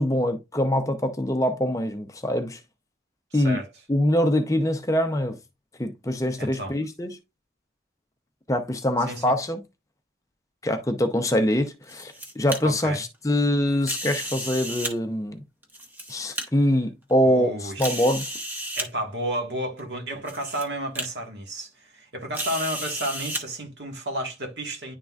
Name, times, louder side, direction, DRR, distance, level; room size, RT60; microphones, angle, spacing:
voice 1, 0.0-2.6 3.3-3.6 3.9-5.4 5.8-7.2 8.5-9.6 10.6-15.4 16.1-18.2, left 1 dB, 20° left, 0.6 m, -24 dB
voice 2, 3.3-3.7 6.4-6.7 9.1-9.3 12.6-13.0 17.2-18.0 18.8-25.0, right 1 dB, 75° right, 1.7 m, -32 dB
sound 1, 11.7-12.6 13.8-14.9 15.6-16.4 17.1-17.2 17.8-18.9 19.8-19.9 20.3-20.6 21.0-21.1 22.3-23.4, right 1 dB, 10° right, 1.0 m, -32 dB
10.5 x 3.8 x 2.4 m
head